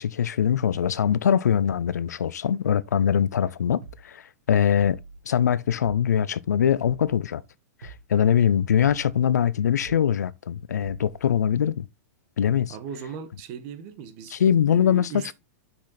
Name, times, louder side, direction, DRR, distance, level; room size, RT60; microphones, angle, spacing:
voice 1, 0.0-4.2 4.5-5.0 5.3-7.4 7.8-11.9 12.4-12.8 14.3-15.3, left 8 dB, 85° left, 0.5 m, -22 dB
sound 1, 3.8-4.0 4.8-5.2 5.8-6.0 6.8-7.2 7.8-8.0 8.8-9.2 9.8-10.0 10.8-11.2, right 4 dB, 90° right, 2.1 m, -43 dB
voice 2, 12.7-14.4 14.7-15.3, right 7 dB, 50° right, 1.6 m, -38 dB
6.2 x 6.1 x 4.0 m
hypercardioid pair, 115°, 9 cm